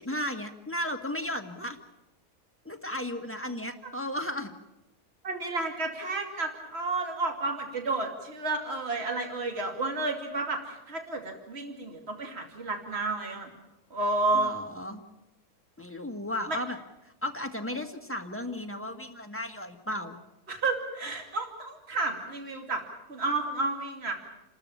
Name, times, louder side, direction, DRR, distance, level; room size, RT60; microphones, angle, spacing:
voice 1, 0.0-1.8 2.7-4.5 14.3-15.0 15.8-16.8 17.2-20.2, left 1 dB, 10° left, 5 dB, 1.6 m, -34 dB
voice 2, 5.2-13.5 13.9-14.6 16.5-16.6 20.5-22.8 23.1-24.1, right 3 dB, 40° right, 3 dB, 2.8 m, -31 dB
29.5 x 13.0 x 8.8 m, 0.95 s
omnidirectional pair, 1.6 m